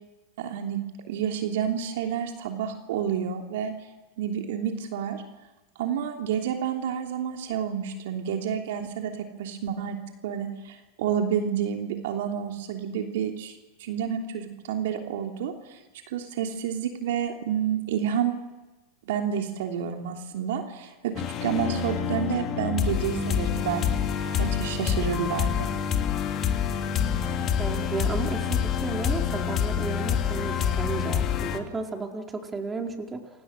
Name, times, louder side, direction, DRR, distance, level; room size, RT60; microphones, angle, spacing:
voice 1, 0.4-0.8 1.1-3.7 4.2-5.2 5.8-10.0 10.2-13.5 13.8-15.8 16.1-18.3 19.1-21.1 21.4-24.0 24.4-25.7, right 8 dB, 65° right, 3 dB, 3.2 m, -29 dB
sound 1, 21.2-31.6, left 8 dB, 35° left, 2.9 m, -27 dB
voice 2, 27.6-33.2, right 4 dB, 20° right, 2 dB, 4.5 m, -33 dB
29.5 x 24.5 x 6.5 m, 1.1 s
hypercardioid pair, 90°, 0 cm